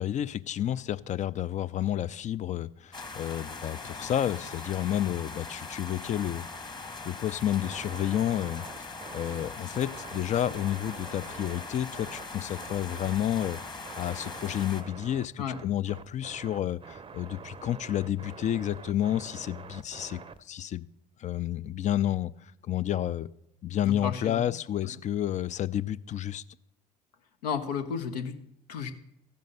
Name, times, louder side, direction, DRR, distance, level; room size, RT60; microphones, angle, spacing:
voice 1, 0.0-6.5 7.0-8.6 9.1-13.6 14.0-20.2 20.5-20.9 21.2-22.3 22.7-23.3 23.6-26.4, left 11 dB, 35° left, 0.4 m, -30 dB
sound 1, 2.9-14.8, left 3 dB, 20° left, 1.3 m, -41 dB
sound 2, 7.6-20.6, right 5 dB, 25° right, 0.6 m, -46 dB
voice 2, 15.4-15.7 23.8-24.6 27.4-28.3 28.7-28.9, left 6 dB, 80° left, 0.9 m, -33 dB
14.0 x 5.2 x 6.6 m
hypercardioid pair, 55°, 20 cm